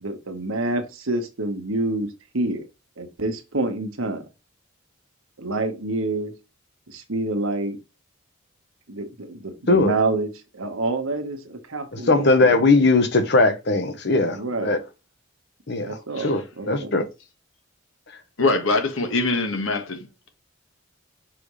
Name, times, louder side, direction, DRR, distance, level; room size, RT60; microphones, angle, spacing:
voice 1, 0.0-2.1 2.3-2.7 3.0-4.2 5.4-6.3 6.9-7.8 8.9-12.5 14.3-14.7 15.8-16.9, right 2 dB, 85° right, 1.4 m, -27 dB
voice 2, 12.1-14.8 15.7-15.9 16.2-16.4 16.7-17.0, left 3 dB, 55° left, 1.1 m, -19 dB
voice 3, 18.4-20.3, left 3 dB, 75° left, 1.5 m, -23 dB
6.1 x 5.0 x 3.2 m
head